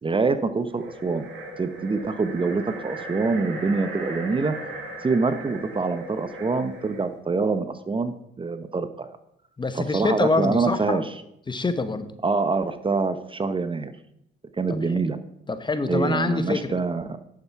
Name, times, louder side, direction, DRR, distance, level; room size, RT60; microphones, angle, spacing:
voice 1, 0.0-1.3 1.6-4.5 5.0-9.1 9.7-11.1 12.2-13.9 14.6-15.2 15.9-17.2, right 4 dB, 25° right, 11 dB, 0.8 m, -25 dB
sound 1, 0.7-7.1, right 1 dB, 70° right, 5.0 m, -38 dB
voice 2, 9.6-11.1 11.5-12.1 14.7-14.8 15.5-16.8, left 3 dB, 25° left, 11 dB, 1.0 m, -25 dB
10.5 x 7.0 x 5.8 m, 0.77 s
cardioid pair, 90°, 20 cm